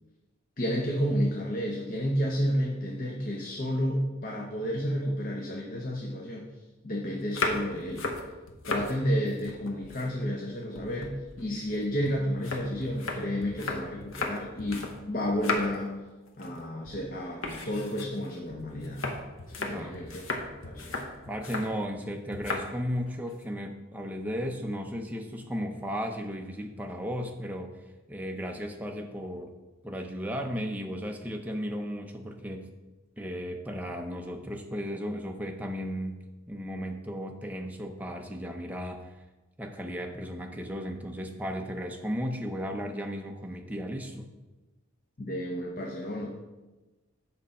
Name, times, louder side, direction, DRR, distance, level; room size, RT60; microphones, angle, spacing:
voice 1, 0.6-6.5 6.8-8.1 8.7-15.9 16.4-19.1 19.6-20.3 20.6-21.0 45.2-46.3, equal, 40° left, -1 dB, 0.7 m, -31 dB
sound 1, 7.2-8.9 9.3-10.5 10.8-15.0 15.2-15.9 16.3-16.6 16.8-17.0 17.4-21.7 22.3-22.7 23.1-23.4, left 3 dB, 70° left, 1.0 m, -35 dB
voice 2, 19.7-20.0 21.3-27.8 28.1-29.5 29.8-32.7 33.2-36.2 36.5-39.1 39.6-44.3, equal, 5° right, 3 dB, 0.6 m, -35 dB
7.7 x 5.5 x 4.2 m, 1.1 s
head